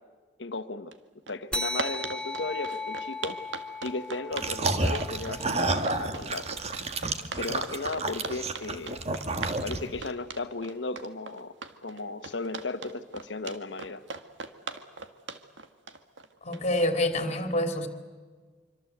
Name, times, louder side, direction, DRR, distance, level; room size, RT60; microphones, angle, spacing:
voice 1, 0.4-0.9 1.3-3.4 3.8-6.5 7.4-9.0 9.6-11.5 11.8-14.0, left 3 dB, 70° left, 1.3 m, -35 dB
sound 1, 0.9-1.0 1.3-16.8, right 4 dB, 80° right, 1.8 m, -39 dB
sound 2, 1.5-6.4, left 2 dB, 5° left, 0.7 m, -37 dB
sound 3, 4.3-10.1, right 3 dB, 35° right, 1.6 m, -30 dB
voice 2, 16.4-17.9, left 1 dB, 35° left, 2.9 m, -27 dB
25.5 x 25.5 x 8.1 m
head